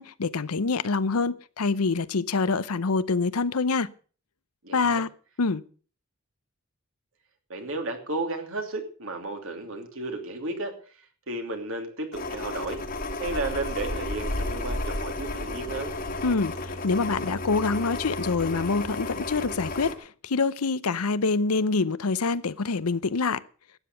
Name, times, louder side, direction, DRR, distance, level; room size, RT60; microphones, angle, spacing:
voice 1, 0.0-3.9 4.7-5.1 5.4-5.6 16.2-23.4, left 4 dB, 90° left, 0.7 m, -26 dB
voice 2, 4.6-5.0 7.5-12.8 13.2-15.9, right 2 dB, 65° right, 2.9 m, -33 dB
sound 1, 12.1-19.9, left 2 dB, 40° left, 1.6 m, -32 dB
12.5 x 9.1 x 6.8 m
head